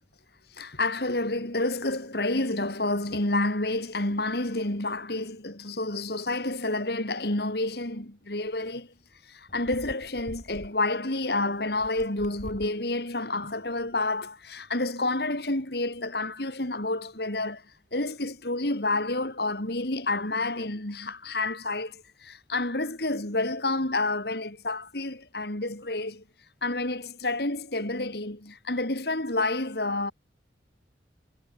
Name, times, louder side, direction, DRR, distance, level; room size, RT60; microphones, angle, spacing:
voice 1, 0.5-8.9 9.2-17.7 17.9-26.2 26.6-30.1, left 2 dB, 60° left, 3.3 m, -29 dB
sound 1, 8.5-8.7 9.5-10.7 11.5-12.8 13.5-13.9, equal, 40° left, 7.2 m, -45 dB
head